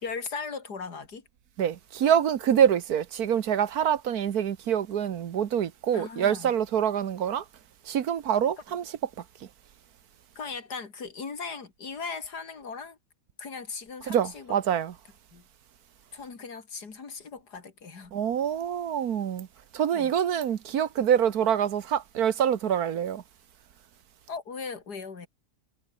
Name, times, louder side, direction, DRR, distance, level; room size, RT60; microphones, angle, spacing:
voice 1, 0.0-1.2 5.9-6.5 10.3-13.0 13.4-14.6 15.3-15.4 16.1-18.1 19.9-20.1 24.3-25.3, left 5 dB, 85° left, 3.2 m, -38 dB
voice 2, 1.6-7.4 7.9-8.8 14.1-14.9 18.1-19.5 19.7-23.2, right 9 dB, 70° right, 1.5 m, -25 dB
omnidirectional pair, 1.7 m